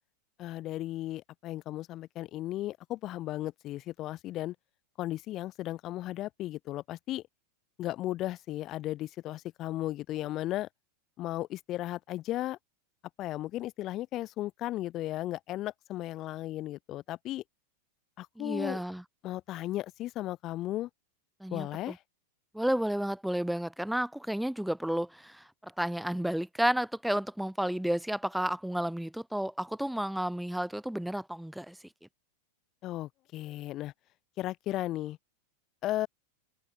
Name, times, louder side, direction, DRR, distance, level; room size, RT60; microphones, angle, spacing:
voice 1, 0.4-4.5 5.0-7.2 7.8-10.7 11.2-12.6 13.2-17.4 18.2-18.8 19.2-20.9 21.5-22.0 32.8-33.9 34.4-35.2 35.8-36.1, left 15 dB, 35° left, 1.9 m, -35 dB
voice 2, 18.4-19.0 21.4-21.9 22.5-25.4 25.8-31.8, right 1 dB, ahead, 1.7 m, -31 dB
open air
figure-of-eight pair, 90°, 0 cm